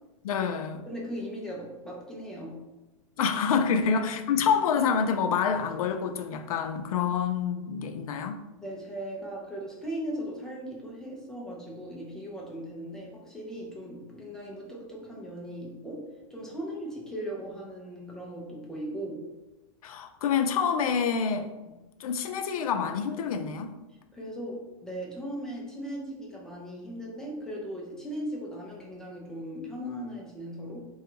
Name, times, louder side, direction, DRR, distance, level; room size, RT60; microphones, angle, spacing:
voice 1, 0.2-0.8 3.2-8.4 19.8-21.5 22.0-23.7, left 6 dB, 85° left, 8 dB, 0.5 m, -27 dB
voice 2, 0.9-2.7 3.8-3.9 4.4-4.5 8.6-19.2 21.7-21.8 24.1-30.9, equal, 5° left, -4 dB, 0.5 m, -38 dB
3.4 x 2.3 x 2.9 m, 1.1 s
supercardioid pair, 150°, 18 cm